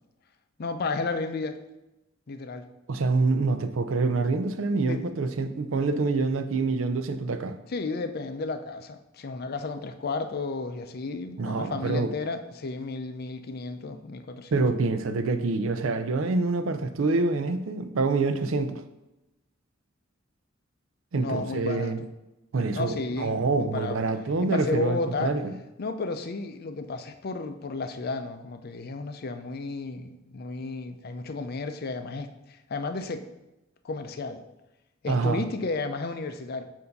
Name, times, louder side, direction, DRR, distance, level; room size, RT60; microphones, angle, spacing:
voice 1, 0.6-1.6 2.3-2.6 4.9-5.0 7.7-14.6 21.1-21.9 22.7-24.1 24.4-25.3 25.8-33.2 33.8-34.4 35.0-36.6, left 3 dB, 50° left, 8 dB, 0.5 m, -33 dB
voice 2, 2.9-7.6 11.4-12.1 14.5-18.8 21.1-22.0 22.5-25.5 35.1-35.4, right 3 dB, 85° right, 9 dB, 0.5 m, -26 dB
6.9 x 2.7 x 5.2 m, 0.96 s
head